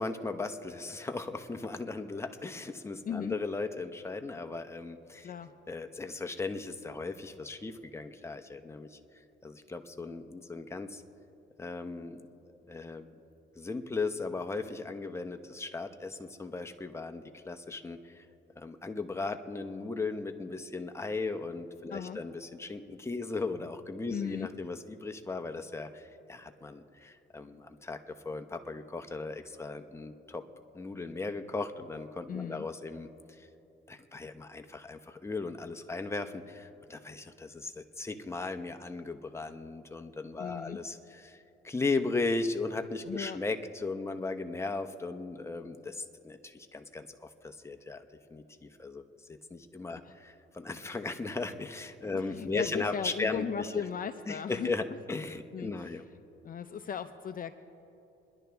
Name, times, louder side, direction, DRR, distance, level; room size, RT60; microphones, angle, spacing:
voice 1, 0.0-5.3 5.7-9.0 9.4-11.0 11.6-12.4 12.7-13.1 13.6-18.3 18.6-30.4 30.7-33.1 33.4-33.5 33.9-48.0 48.3-49.0 49.3-53.8 54.3-56.0, left 3 dB, 15° left, 6 dB, 0.9 m, -37 dB
voice 2, 3.1-3.4 5.2-5.5 21.9-22.2 24.1-24.5 32.3-32.7 40.4-40.8 43.1-43.4 50.0-50.1 52.1-54.7 55.5-56.0 56.4-57.5, left 7 dB, 45° left, 9 dB, 0.6 m, -37 dB
26.5 x 11.0 x 3.5 m, 2.9 s
cardioid pair, 90°, 20 cm